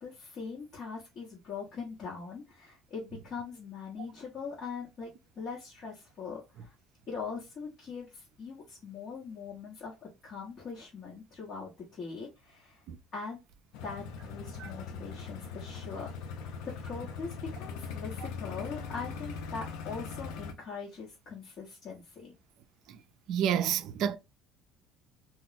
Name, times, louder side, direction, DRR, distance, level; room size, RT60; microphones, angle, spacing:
voice 1, 0.0-5.1 5.4-6.7 7.1-12.8 13.1-13.4 13.8-16.1 16.8-22.3, left 5 dB, 40° left, 1.1 m, -41 dB
sound 1, 13.7-20.5, left 5 dB, 80° left, 0.5 m, -40 dB
voice 2, 23.3-24.2, right 9 dB, 60° right, 0.3 m, -29 dB
2.3 x 2.0 x 3.8 m
cardioid pair, 130°, 0 cm